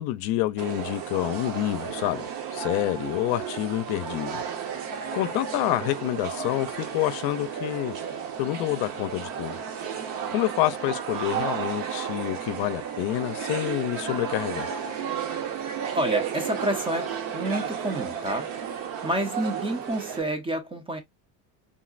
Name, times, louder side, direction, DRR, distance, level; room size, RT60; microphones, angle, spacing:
voice 1, 0.0-4.4 5.1-7.9 8.4-9.6 10.3-14.7, left 15 dB, 70° left, 0.5 m, -28 dB
sound 1, 0.6-20.2, right 8 dB, 60° right, 0.9 m, -33 dB
voice 2, 15.9-17.1 17.3-21.0, right 1 dB, 15° right, 0.4 m, -29 dB
3.7 x 2.1 x 2.3 m
cardioid pair, 150°, 38 cm